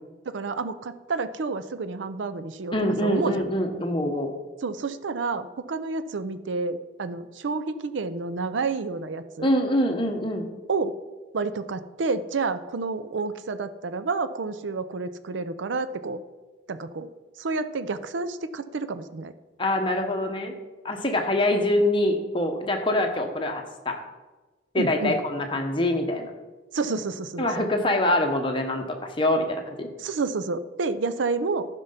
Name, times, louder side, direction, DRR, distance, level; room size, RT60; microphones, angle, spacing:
voice 1, 0.3-2.8 3.0-3.3 4.6-9.5 10.7-11.0 11.3-16.2 16.7-17.1 17.4-19.3 24.8-25.2 26.7-27.7 30.0-31.7, right 4 dB, 75° right, 12 dB, 0.5 m, -29 dB
voice 2, 2.7-4.3 9.4-10.5 19.6-20.5 20.8-24.0 24.7-26.3 27.4-29.9, left 1 dB, 25° left, 3 dB, 1.0 m, -24 dB
11.5 x 5.4 x 5.6 m, 1.2 s
head